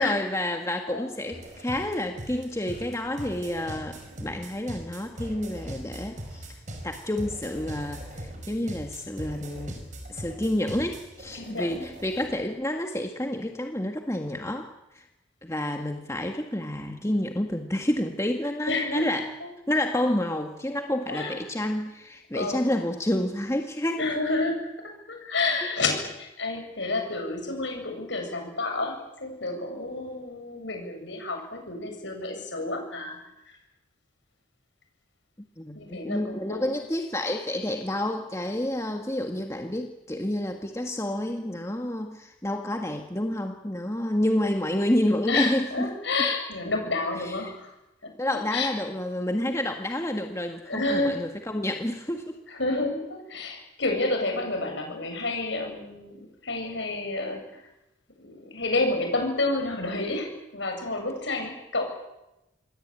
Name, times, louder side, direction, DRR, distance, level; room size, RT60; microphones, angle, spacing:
voice 1, 0.0-6.5 6.8-9.8 10.1-15.1 15.4-19.3 19.7-24.0 35.4-45.9 47.2-47.5 48.2-52.4, left 1 dB, 15° left, 4 dB, 1.7 m, -29 dB
sound 1, 1.3-12.4, right 1 dB, 40° right, 6.0 m, -40 dB
voice 2, 11.3-11.9 18.7-19.1 19.4-19.5 20.3-20.4 21.1-21.4 22.3-22.6 24.0-33.2 35.7-36.7 45.3-47.7 48.0-48.7 50.7-51.2 52.5-57.6 58.2-61.8, left 2 dB, 65° left, 3 dB, 7.8 m, -30 dB
27.5 x 20.5 x 9.0 m, 0.94 s
head